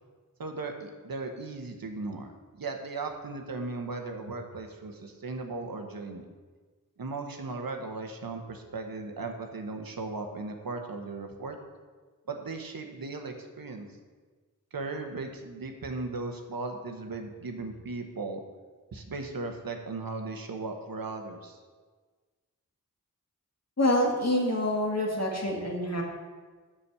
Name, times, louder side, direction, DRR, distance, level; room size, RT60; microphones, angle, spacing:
voice 1, 0.4-6.2 7.0-11.6 12.3-13.9 14.7-18.4 18.9-21.6, right 3 dB, 85° right, 4 dB, 1.1 m, -37 dB
voice 2, 23.8-26.0, left 1 dB, 50° left, -1 dB, 1.9 m, -26 dB
7.2 x 6.2 x 6.8 m, 1.4 s
wide cardioid pair, 80°, 34 cm